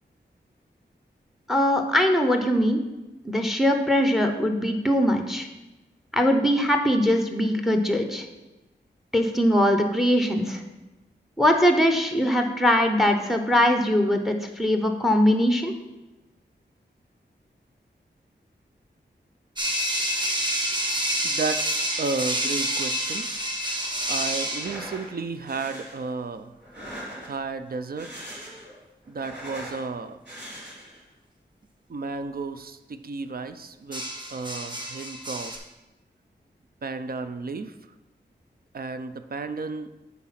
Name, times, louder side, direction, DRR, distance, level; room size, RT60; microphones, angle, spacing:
voice 1, 1.5-2.8 3.2-5.5 6.1-8.3 9.1-10.6 11.4-15.7, equal, ahead, 5 dB, 0.8 m, -21 dB
sound 1, 19.6-24.9 28.4-28.7 33.9-35.6, equal, 25° right, 1.1 m, -28 dB
voice 2, 21.2-23.3 24.1-26.5 27.2-28.1 29.1-30.2 31.9-35.6 36.8-37.7 38.7-39.9, right 4 dB, 55° right, 10 dB, 0.5 m, -33 dB
sound 2, 24.5-25.1 25.5-26.0 26.6-27.5 27.9-28.7 29.0-29.8 30.2-31.0, equal, 70° right, 3.1 m, -40 dB
8.6 x 4.1 x 5.8 m, 1.0 s
wide cardioid pair, 105°, 19 cm